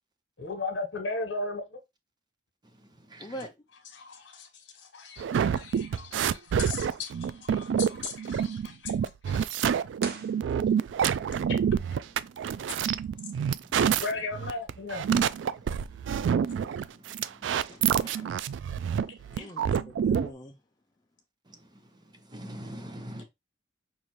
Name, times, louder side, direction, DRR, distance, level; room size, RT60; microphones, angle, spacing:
voice 1, 0.4-1.8 3.9-9.5 14.0-15.0 19.4-19.5, left 3 dB, 80° left, 1.1 m, -37 dB
voice 2, 3.2-3.5 17.7-18.3 19.0-20.6, equal, 20° left, 0.4 m, -43 dB
sound 1, 5.2-20.3, right 8 dB, 80° right, 0.3 m, -27 dB
sound 2, 10.0-11.2, right 5 dB, 60° right, 0.8 m, -41 dB
voice 3, 12.6-13.2 16.4-17.9 21.5-21.8 22.3-23.2, equal, 25° right, 0.8 m, -45 dB
5.4 x 2.5 x 3.0 m
head